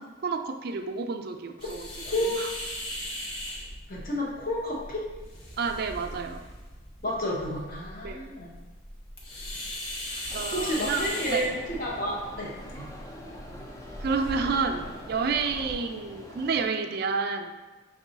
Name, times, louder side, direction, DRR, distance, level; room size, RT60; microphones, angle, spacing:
voice 1, 0.0-1.9 2.4-2.5 5.6-6.5 8.0-8.3 10.3-11.5 14.0-17.5, right 4 dB, 55° right, 4 dB, 0.3 m, -30 dB
sound 1, 1.6-15.8, left 1 dB, 90° left, 1.0 m, -39 dB
voice 2, 2.0-2.4 3.9-5.1 7.0-8.6 10.1-12.8, equal, 45° left, -4 dB, 0.7 m, -31 dB
sound 2, 10.3-16.7, equal, 15° left, 0.4 m, -45 dB
5.4 x 2.3 x 3.9 m, 1.2 s
head